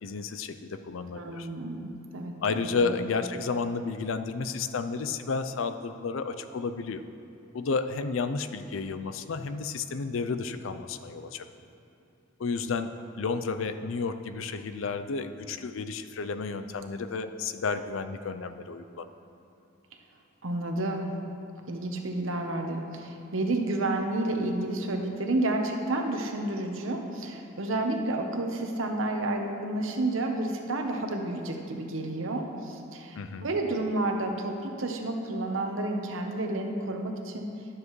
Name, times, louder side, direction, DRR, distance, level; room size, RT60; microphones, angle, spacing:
voice 1, 0.0-1.5 2.4-7.0 7.5-11.4 12.4-12.9 13.2-19.1 33.2-33.5, left 4 dB, 80° left, 10 dB, 0.5 m, -32 dB
voice 2, 1.1-3.0 20.4-21.1 21.7-37.5, right 2 dB, 85° right, 3 dB, 0.9 m, -30 dB
12.0 x 7.4 x 3.1 m, 2.9 s
head